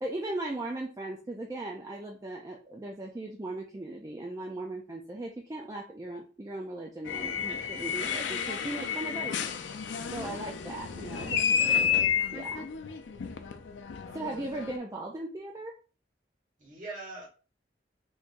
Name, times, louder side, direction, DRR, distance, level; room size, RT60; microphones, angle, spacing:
voice 1, 0.0-9.6 10.1-12.7 14.1-15.7, right 2 dB, 20° right, -1 dB, 0.4 m, -38 dB
sound 1, 7.1-14.8, left 7 dB, 85° left, 0.4 m, -31 dB
voice 2, 7.4-8.3 10.2-10.5 14.0-14.2 16.6-17.3, right 2 dB, 45° right, -3 dB, 1.3 m, -45 dB
3.6 x 3.0 x 2.6 m, 0.34 s
head